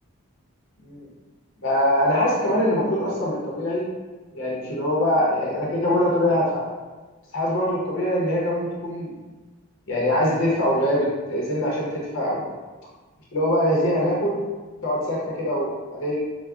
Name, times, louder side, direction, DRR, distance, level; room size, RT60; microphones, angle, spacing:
voice 1, 1.6-3.8 4.3-6.6 7.3-9.1 9.9-11.9 12.1-12.4 13.3-14.4 14.8-16.2, left 1 dB, 60° left, -4 dB, 0.7 m, -23 dB
4.5 x 2.0 x 2.3 m, 1.2 s
head